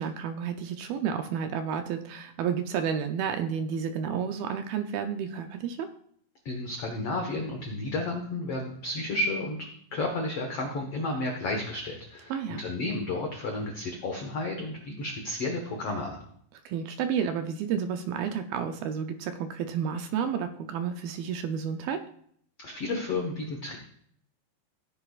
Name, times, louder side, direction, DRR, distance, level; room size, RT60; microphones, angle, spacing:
voice 1, 0.0-5.9 12.3-12.6 16.7-22.0, right 7 dB, 80° right, 6 dB, 2.2 m, -31 dB
voice 2, 6.4-9.7 9.9-16.2 22.6-23.8, left 2 dB, 75° left, 2 dB, 1.4 m, -32 dB
16.5 x 10.0 x 2.4 m, 0.64 s
omnidirectional pair, 4.9 m